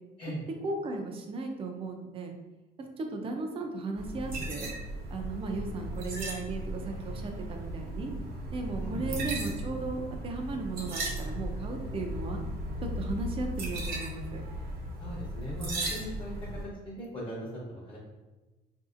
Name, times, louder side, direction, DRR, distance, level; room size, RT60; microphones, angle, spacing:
voice 1, 0.6-2.3 2.8-4.7 5.1-8.1 8.5-12.4 13.0-14.4, right 3 dB, 35° right, 3 dB, 0.5 m, -36 dB
sound 1, 4.0-16.6, right 1 dB, 60° right, 0.9 m, -36 dB
voice 2, 8.8-9.1 15.0-16.3 16.8-18.0, equal, 30° left, -5 dB, 0.9 m, -39 dB
3.9 x 2.6 x 2.5 m, 1.2 s
cardioid pair, 110°, 17 cm